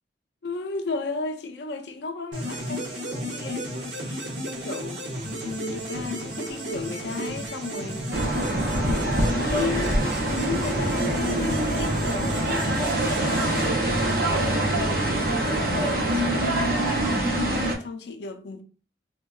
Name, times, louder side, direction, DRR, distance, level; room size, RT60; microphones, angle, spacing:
voice 1, 0.4-8.1 8.5-12.8 13.1-13.8 14.3-18.6, left 4 dB, 75° left, 0.4 m, -34 dB
sound 1, 2.3-14.4, right 1 dB, 90° right, 0.9 m, -33 dB
sound 2, 8.1-17.7, right 1 dB, 55° right, 0.6 m, -24 dB
3.6 x 2.2 x 2.3 m
head